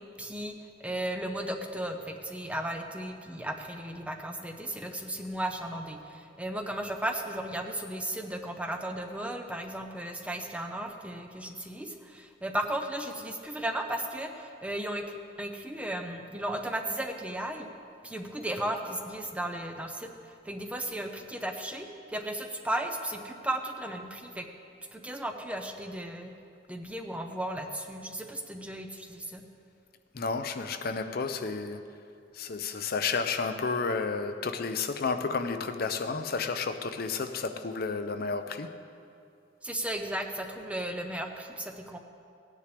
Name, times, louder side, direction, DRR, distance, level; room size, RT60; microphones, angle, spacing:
voice 1, 0.2-17.7 18.0-24.5 24.9-26.3 26.7-29.4 39.6-42.0, right 1 dB, 5° right, 4 dB, 0.7 m, -35 dB
voice 2, 30.1-31.8 32.3-38.7, left 4 dB, 55° left, 8 dB, 0.6 m, -31 dB
18.5 x 9.8 x 3.4 m, 2.5 s
head